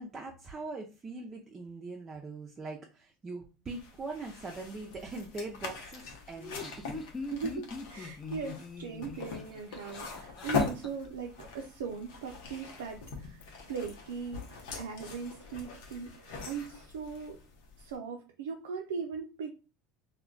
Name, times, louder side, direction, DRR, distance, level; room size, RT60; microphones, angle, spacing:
voice 1, 0.0-6.9, right 3 dB, 30° right, 1 dB, 0.5 m, -42 dB
sound 1, 3.7-18.0, left 4 dB, 75° left, 0.7 m, -41 dB
Laughter, 6.3-10.9, left 4 dB, 25° left, 0.5 m, -42 dB
voice 2, 7.3-17.4 17.8-19.6, right 5 dB, 90° right, 1 dB, 0.3 m, -39 dB
2.2 x 2.1 x 3.7 m, 0.33 s
supercardioid pair, 95°, 0 cm